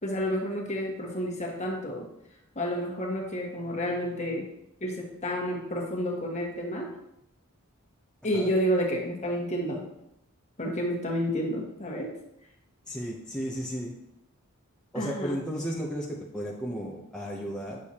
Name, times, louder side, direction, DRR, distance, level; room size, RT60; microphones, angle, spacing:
voice 1, 0.0-2.1 2.5-4.5 4.8-6.9 8.2-9.8 10.6-12.1 14.9-15.4, equal, 30° left, -1 dB, 1.4 m, -30 dB
voice 2, 12.9-13.9 14.9-17.8, equal, 5° left, -4 dB, 0.7 m, -34 dB
8.8 x 6.5 x 2.9 m, 0.81 s
head